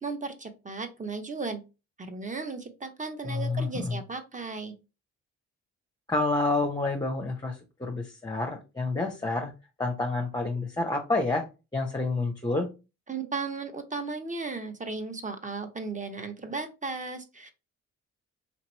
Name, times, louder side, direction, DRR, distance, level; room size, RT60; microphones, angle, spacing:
voice 1, 0.0-1.6 2.0-4.7 13.1-17.5, right 4 dB, 20° right, 7 dB, 1.0 m, -35 dB
voice 2, 3.2-4.0 6.1-9.5 9.8-11.4 11.7-12.7, left 2 dB, 10° left, 1 dB, 0.9 m, -29 dB
4.4 x 2.8 x 3.0 m, 0.28 s
hypercardioid pair, 40°, 38 cm